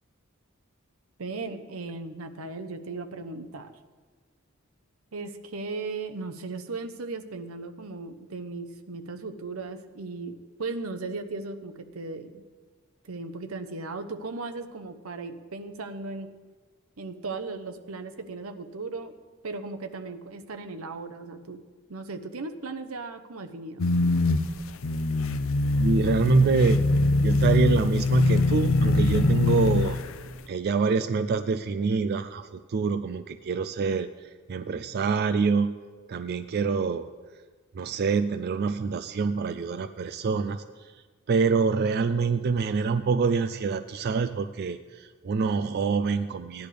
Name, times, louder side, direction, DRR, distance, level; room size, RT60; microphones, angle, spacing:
voice 1, 1.2-3.7 5.1-12.4 13.0-16.3 17.0-19.1 19.4-21.6 21.9-23.9, right 3 dB, 85° right, 7 dB, 0.9 m, -37 dB
sound 1, 23.8-30.3, left 2 dB, 70° left, 0.5 m, -23 dB
voice 2, 25.8-26.8 27.2-30.0 30.5-35.7 36.1-37.1 37.7-40.9 41.3-46.7, right 4 dB, 50° right, 10 dB, 0.4 m, -26 dB
17.0 x 10.5 x 3.4 m, 1.4 s
head